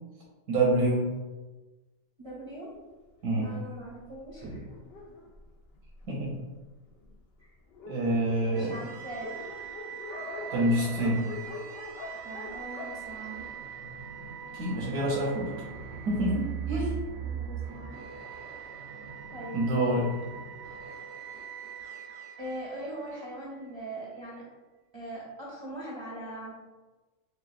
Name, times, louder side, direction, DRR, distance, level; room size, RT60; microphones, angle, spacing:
voice 1, 0.5-1.1 3.2-3.5 6.1-6.4 7.9-8.8 10.5-11.3 14.5-15.5 16.1-16.9 19.5-20.1, right 1 dB, 80° right, -4 dB, 1.3 m, -27 dB
voice 2, 2.2-2.7 3.3-4.7 7.4-7.6 8.4-9.4 12.2-13.5 17.2-18.0 19.3-19.9 22.4-24.5 24.9-26.5, right 1 dB, 25° right, -6 dB, 0.6 m, -41 dB
Dog, 3.3-6.3 7.0-7.1 7.4-7.5 7.7-14.1, left 3 dB, 65° left, 0.6 m, -44 dB
sound 1, 8.5-23.7, right 7 dB, 65° right, 0.7 m, -40 dB
6.6 x 2.3 x 2.5 m, 1.2 s
omnidirectional pair, 1.5 m